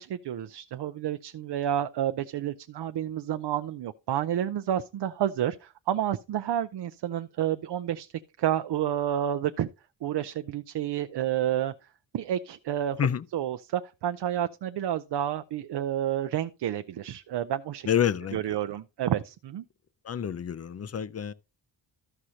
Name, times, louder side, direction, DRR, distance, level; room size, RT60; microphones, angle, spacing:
voice 1, 0.0-8.1 8.4-9.7 10.0-11.7 12.1-13.0 13.3-17.9 18.3-19.6, right 11 dB, 65° right, 0.5 m, -30 dB
voice 2, 17.8-18.4 20.0-21.3, left 9 dB, 35° left, 0.4 m, -28 dB
13.5 x 6.3 x 2.8 m
wide cardioid pair, 150°, 45 cm